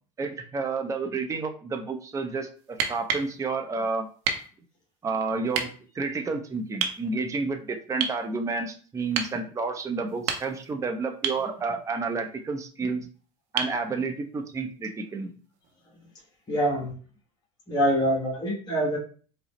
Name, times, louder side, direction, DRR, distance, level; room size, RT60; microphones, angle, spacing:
voice 1, 0.2-4.1 5.0-5.7 5.9-13.1 13.5-15.3, right 4 dB, 20° right, 4 dB, 0.6 m, -30 dB
sound 1, 2.7-3.3 4.2-4.5 5.5-5.7 6.8-7.0 8.0-8.2 9.1-9.4 10.1-10.7 11.2-11.5 13.6-13.8 15.6-15.7, right 7 dB, 70° right, 0.6 m, -29 dB
voice 2, 16.5-16.9 17.7-19.0, equal, 25° left, -4 dB, 1.3 m, -25 dB
4.6 x 2.1 x 3.0 m, 0.41 s
supercardioid pair, 90°, 17 cm